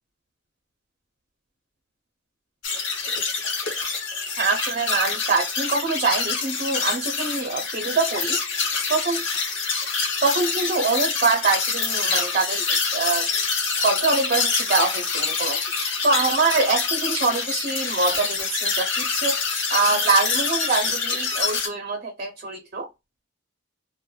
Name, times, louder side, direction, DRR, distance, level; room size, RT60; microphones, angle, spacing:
sound 1, 2.6-21.7, left 4 dB, 65° left, 0.8 m, -26 dB
voice 1, 4.4-8.4 8.9-9.2 10.2-13.3 13.8-19.4 19.7-22.9, right 3 dB, 45° right, 0.5 m, -24 dB
3.0 x 2.1 x 2.2 m
head